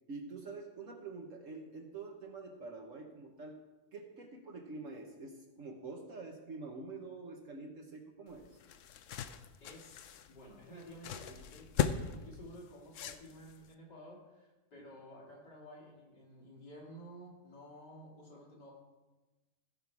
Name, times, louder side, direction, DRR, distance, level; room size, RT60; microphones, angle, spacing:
voice 1, 0.1-3.6 3.9-8.5 14.8-14.9, right 3 dB, 55° right, 2 dB, 1.3 m, -46 dB
sound 1, 8.3-13.7, left 8 dB, 70° left, 0.7 m, -39 dB
voice 2, 9.6-10.0 10.3-18.7, equal, 85° left, -4 dB, 3.4 m, -52 dB
16.0 x 5.5 x 4.6 m, 1.1 s
omnidirectional pair, 1.8 m